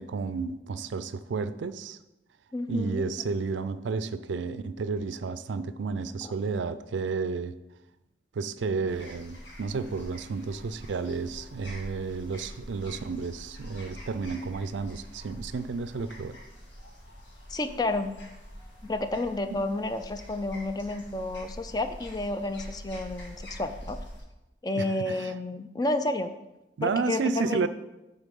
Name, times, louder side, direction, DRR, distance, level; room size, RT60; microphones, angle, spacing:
voice 1, 0.0-2.0 2.7-7.6 8.3-16.4 19.5-19.6 24.8-25.3 26.8-27.7, right 4 dB, 80° right, 0.4 m, -31 dB
voice 2, 2.5-3.0 6.2-6.3 17.5-18.2 18.8-24.0 24.6-26.3 26.8-27.7, left 2 dB, 20° left, 0.4 m, -31 dB
sound 1, 8.9-24.2, equal, 80° left, 2.1 m, -45 dB
8.2 x 4.0 x 5.3 m
head